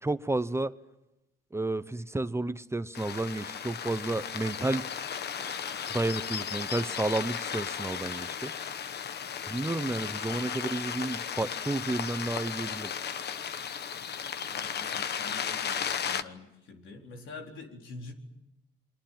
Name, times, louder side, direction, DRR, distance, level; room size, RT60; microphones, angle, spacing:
voice 1, 0.0-0.7 1.5-4.9 5.9-8.5 9.5-12.9, right 2 dB, 15° right, 12 dB, 0.9 m, -31 dB
sound 1, 2.9-16.2, left 7 dB, 55° left, 1.2 m, -35 dB
voice 2, 14.4-18.1, left 3 dB, 75° left, 3 dB, 4.3 m, -46 dB
27.5 x 22.0 x 7.6 m, 0.96 s
cardioid pair, 90°, 20 cm